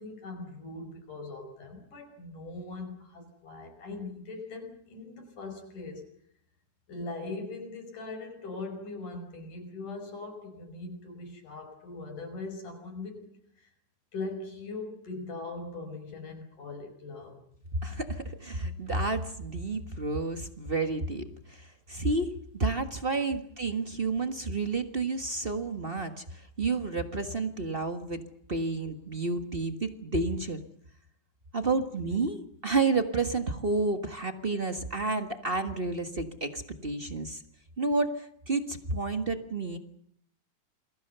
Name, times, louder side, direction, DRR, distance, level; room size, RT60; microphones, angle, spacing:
voice 1, 0.0-6.1 6.9-13.3 13.6-13.7 14.1-17.4, left 3 dB, 75° left, 6 dB, 6.9 m, -40 dB
voice 2, 17.8-22.3 22.5-26.2 26.6-28.2 28.5-30.6 31.5-37.4 37.8-39.8, right 3 dB, 35° right, 8 dB, 0.9 m, -30 dB
28.5 x 21.5 x 6.9 m, 0.68 s
omnidirectional pair, 3.6 m